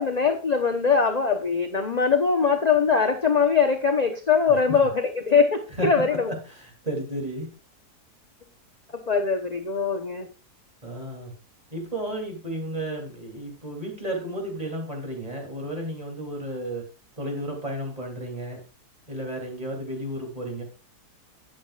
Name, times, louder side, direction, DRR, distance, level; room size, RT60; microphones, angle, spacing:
voice 1, 0.0-6.3 9.1-10.3, left 5 dB, 30° left, 5 dB, 0.8 m, -22 dB
voice 2, 5.8-7.5 10.8-11.3 11.7-16.8 17.2-18.6 19.1-20.6, right 1 dB, 20° right, 1 dB, 3.0 m, -33 dB
13.0 x 9.0 x 2.4 m, 0.32 s
omnidirectional pair, 1.7 m